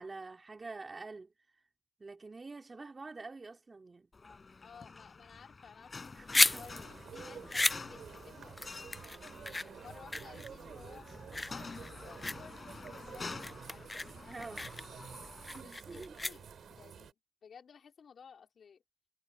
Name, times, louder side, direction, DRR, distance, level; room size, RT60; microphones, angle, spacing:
voice 1, 0.0-1.3 2.0-4.1 6.1-6.6 14.3-14.7 15.5-16.1, right 3 dB, 35° right, 3.6 m, -47 dB
sound 1, 4.1-15.6, left 4 dB, 40° left, 5.5 m, -49 dB
voice 2, 4.6-8.9 9.5-11.1 11.5-14.9 15.6-16.4 16.8-17.2 17.4-18.8, left 6 dB, 70° left, 4.0 m, -56 dB
sound 2, 5.9-16.8, left 2 dB, 20° left, 0.4 m, -35 dB
sound 3, 6.5-17.1, right 8 dB, 85° right, 4.0 m, -51 dB
cardioid pair, 80°, 0 cm